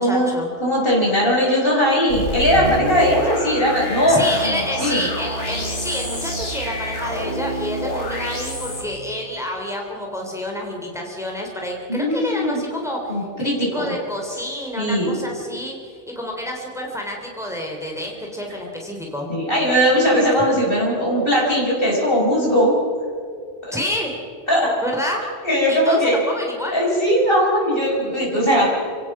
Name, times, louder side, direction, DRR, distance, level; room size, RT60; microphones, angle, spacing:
voice 1, 0.0-0.5 4.1-15.8 16.2-19.3 23.7-24.1 24.8-25.2 25.7-26.8, left 1 dB, ahead, 0 dB, 3.5 m, -28 dB
voice 2, 0.6-5.0 11.9-12.6 13.1-13.6 13.8-13.9 14.8-15.1 19.3-22.7 23.6-23.8 24.5-24.7 25.4-26.2 26.7-28.7, equal, 55° left, -3 dB, 5.3 m, -19 dB
sound 1, 2.1-8.8, equal, 85° left, 4.3 m, -27 dB
29.0 x 17.5 x 6.1 m, 2.3 s
omnidirectional pair, 1.2 m